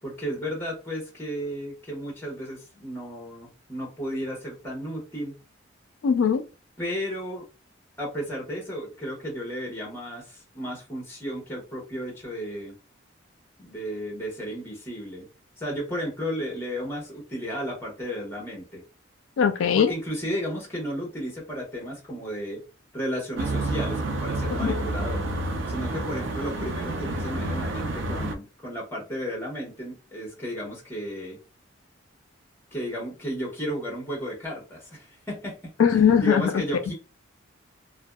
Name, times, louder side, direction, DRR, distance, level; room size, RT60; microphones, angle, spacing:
voice 1, 0.0-5.4 6.8-7.4 8.0-12.7 13.6-15.3 15.6-18.8 19.7-22.6 22.9-25.2 25.7-31.4 32.7-35.6 36.2-36.9, equal, 10° left, 1.0 m, -33 dB
voice 2, 6.0-6.4 19.4-19.9 24.5-24.9 35.8-36.6, left 7 dB, 85° left, 0.3 m, -21 dB
sound 1, 23.4-28.3, right 2 dB, 70° right, 0.4 m, -29 dB
2.6 x 2.2 x 2.2 m
head